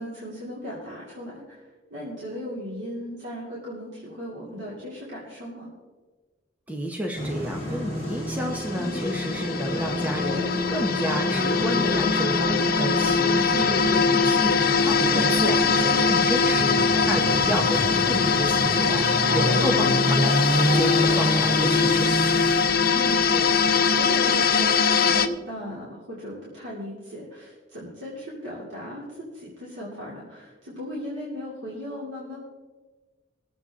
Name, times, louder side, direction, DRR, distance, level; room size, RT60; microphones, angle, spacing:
voice 1, 0.0-1.6 1.9-5.7 8.7-9.0 22.9-29.0 29.3-32.4, equal, 80° right, -7 dB, 3.0 m, -37 dB
voice 2, 6.7-22.1, equal, 10° right, 1 dB, 0.9 m, -31 dB
sound 1, 7.1-24.5, equal, 35° right, 2.4 m, -29 dB
sound 2, 7.6-25.3, left 5 dB, 50° left, 0.8 m, -22 dB
21.5 x 8.1 x 3.7 m, 1.3 s
head